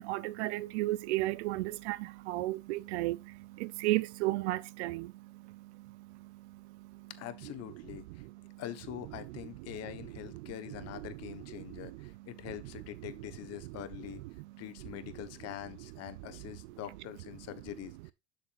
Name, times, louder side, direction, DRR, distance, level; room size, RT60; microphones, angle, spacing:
voice 1, 0.0-2.0 2.3-3.2 3.6-5.1, right 18 dB, 75° right, 0.5 m, -32 dB
voice 2, 7.1-8.2 8.6-14.2 14.6-18.1, left 12 dB, 50° left, 1.2 m, -44 dB
7.4 x 6.7 x 2.5 m
supercardioid pair, 105°, 33 cm